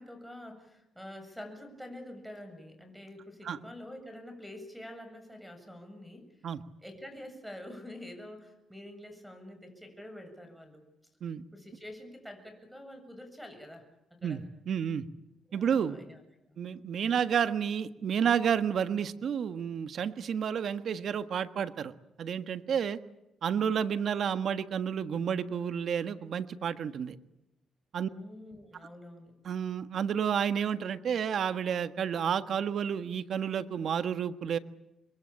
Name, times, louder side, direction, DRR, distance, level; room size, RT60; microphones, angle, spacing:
voice 1, 0.0-6.5 6.8-10.9 11.5-13.8 14.1-14.4 15.5-16.2 16.5-16.6 28.1-29.3, left 1 dB, ahead, 7 dB, 7.6 m, -47 dB
voice 2, 14.2-15.0 15.5-16.0 16.6-21.9 22.2-23.0 23.4-27.2 27.9-28.1 29.4-34.6, right 8 dB, 60° right, 11 dB, 1.5 m, -30 dB
27.0 x 22.0 x 8.8 m, 0.90 s
cardioid pair, 90°, 0 cm